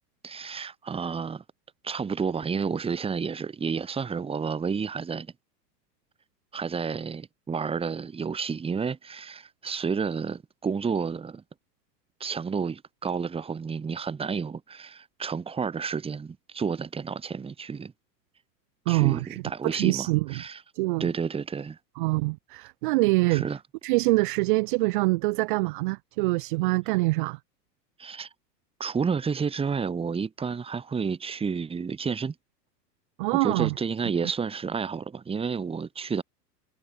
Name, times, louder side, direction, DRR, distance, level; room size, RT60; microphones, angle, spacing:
voice 1, 0.2-1.4 1.8-5.3 6.5-11.4 12.2-17.9 18.9-20.6 21.0-21.8 23.3-23.6 28.0-28.3 28.8-32.3 33.3-36.2, right 5 dB, 10° right, 1.3 m, -30 dB
voice 2, 18.9-20.3 20.7-21.1 22.0-23.4 23.8-27.4 33.2-33.7, right 24 dB, 35° right, 0.4 m, -25 dB
hypercardioid pair, 105°, 50 cm